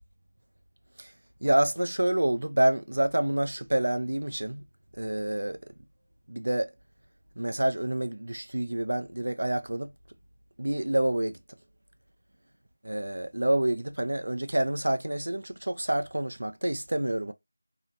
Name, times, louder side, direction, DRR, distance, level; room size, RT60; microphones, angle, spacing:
voice 1, 1.4-4.6 5.0-5.6 6.3-6.7 7.4-9.9 10.6-11.4 12.8-17.3, right 1 dB, 65° right, 0.5 m, -27 dB
2.7 x 2.2 x 2.7 m
figure-of-eight pair, 180°, 0 cm